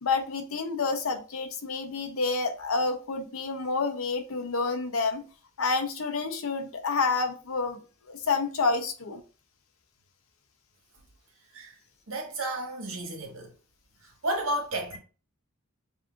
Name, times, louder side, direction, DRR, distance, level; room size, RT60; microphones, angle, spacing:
voice 1, 0.0-5.2 5.6-7.8 8.1-9.2, left 4 dB, 75° left, 0.8 m, -29 dB
voice 2, 12.1-13.5 14.0-15.0, right 1 dB, 75° right, 1.4 m, -32 dB
7.2 x 2.7 x 2.5 m
head